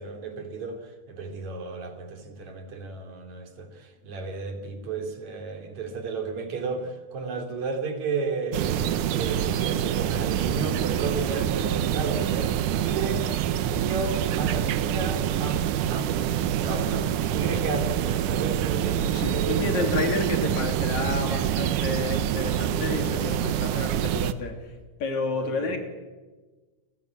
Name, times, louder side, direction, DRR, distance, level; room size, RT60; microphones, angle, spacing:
voice 1, 0.0-12.5 12.8-13.3 13.6-16.3 16.6-20.2 25.3-25.8, right 4 dB, 65° right, 5 dB, 4.1 m, -33 dB
sound 1, 8.5-24.3, right 10 dB, 85° right, 2.5 m, -26 dB
voice 2, 19.0-24.6 25.0-25.8, left 3 dB, 65° left, 5 dB, 4.4 m, -30 dB
29.5 x 20.0 x 8.3 m, 1.3 s
omnidirectional pair, 3.5 m